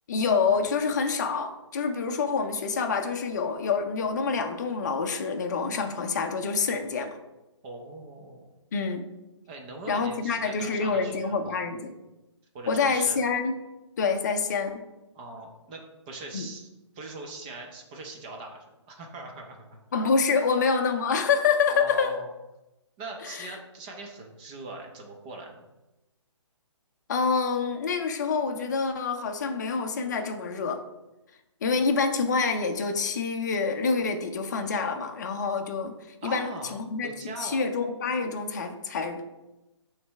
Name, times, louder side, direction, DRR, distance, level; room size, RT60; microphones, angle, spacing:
voice 1, 0.1-7.2 8.7-9.0 9.9-11.9 12.7-13.6 14.0-14.8 16.3-16.5 19.9-22.2 23.2-23.6 27.1-30.8 31.6-39.2, left 5 dB, 35° left, 5 dB, 0.6 m, -27 dB
voice 2, 7.6-8.5 9.5-11.6 12.5-13.2 15.1-16.7 16.9-19.8 21.7-22.3 23.0-25.7 36.2-36.7 37.0-37.6, right 2 dB, 15° right, 1 dB, 0.6 m, -41 dB
8.5 x 3.3 x 3.5 m, 1.0 s
hypercardioid pair, 160°, 16 cm